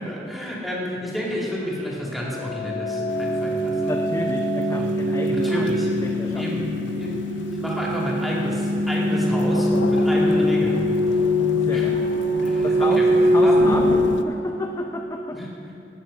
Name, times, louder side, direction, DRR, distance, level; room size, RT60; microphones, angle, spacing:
voice 1, 0.0-3.9 4.7-4.9 5.3-6.1 6.4-6.7 7.0-7.2 7.6-10.9 11.7-11.9 12.4-13.1 13.4-13.6 15.3-15.5, equal, ahead, -5 dB, 2.2 m, -30 dB
sound 1, 2.2-14.9, equal, 85° right, 1.7 m, -22 dB
Thunder / Rain, 3.1-14.2, left 4 dB, 85° left, 0.5 m, -34 dB
voice 2, 3.9-5.7 6.0-6.6 11.6-12.0 12.6-13.9 14.2-15.4, left 1 dB, 20° left, 2 dB, 0.5 m, -31 dB
17.5 x 6.9 x 5.1 m, 2.8 s
head